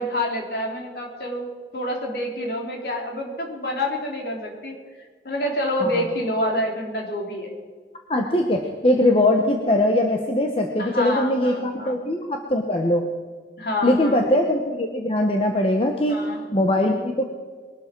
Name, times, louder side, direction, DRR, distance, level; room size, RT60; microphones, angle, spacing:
voice 1, 0.0-1.5 1.7-4.8 5.2-7.5 10.8-12.0 13.6-14.3 16.1-16.4, left 1 dB, 60° left, 0 dB, 3.8 m, -27 dB
voice 2, 8.1-13.0 13.8-17.3, left 1 dB, 35° left, 2 dB, 1.2 m, -21 dB
22.0 x 12.0 x 4.7 m, 1.5 s
head